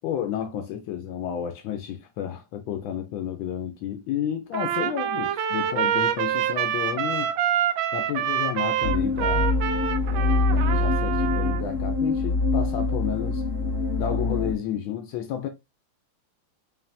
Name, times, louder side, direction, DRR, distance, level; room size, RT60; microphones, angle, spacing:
voice 1, 0.0-7.3 7.9-9.5 10.1-13.4 14.0-15.5, left 9 dB, 80° left, 1.3 m, -31 dB
Trumpet, 4.5-11.6, right 10 dB, 80° right, 1.3 m, -26 dB
sound 1, 8.8-14.5, left 3 dB, 50° left, 0.8 m, -24 dB
5.4 x 2.6 x 2.6 m
omnidirectional pair, 2.2 m